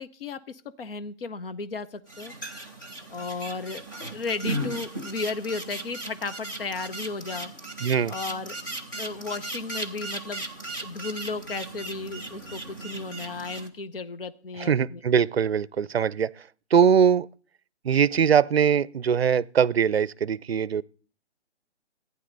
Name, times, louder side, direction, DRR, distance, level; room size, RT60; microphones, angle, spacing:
voice 1, 0.0-2.3 3.1-3.8 4.1-7.5 8.0-8.6 8.9-10.5 10.8-15.0, left 4 dB, 55° left, 0.9 m, -34 dB
sound 1, 2.1-13.7, right 1 dB, 15° left, 0.8 m, -37 dB
voice 2, 7.8-8.1 14.6-16.3 16.7-17.3 17.8-20.8, right 7 dB, 60° right, 0.6 m, -21 dB
15.0 x 9.5 x 3.9 m
hypercardioid pair, 175°, 35 cm